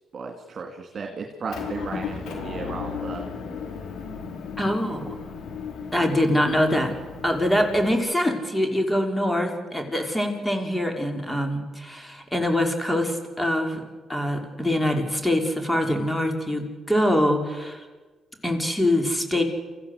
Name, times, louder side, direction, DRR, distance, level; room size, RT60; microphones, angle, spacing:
voice 1, 0.1-3.2, right 4 dB, 55° right, 3 dB, 2.7 m, -35 dB
Motor vehicle (road) / Engine, 1.5-8.0, left 5 dB, 75° left, 4.8 m, -35 dB
voice 2, 4.6-5.1 5.9-6.9 7.2-13.8 14.1-17.9 18.4-19.4, left 1 dB, 10° left, 4 dB, 5.1 m, -24 dB
28.0 x 15.0 x 8.3 m, 1.3 s
supercardioid pair, 60°, 0 cm